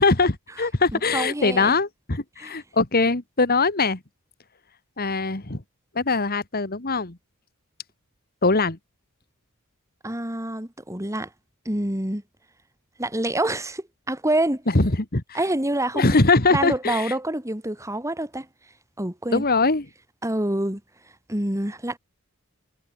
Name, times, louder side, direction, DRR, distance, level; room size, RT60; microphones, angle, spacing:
voice 1, 0.0-4.0 5.0-5.6 6.0-7.2 8.4-8.8 14.7-15.4 15.9-17.1 19.3-19.9, left 3 dB, 45° left, 2.0 m, -22 dB
voice 2, 0.9-1.7 2.4-2.5 10.0-11.3 11.7-12.2 13.0-14.6 15.3-16.2 16.5-18.5 19.0-19.4 20.2-20.8 21.3-22.0, right 1 dB, 15° right, 3.5 m, -26 dB
head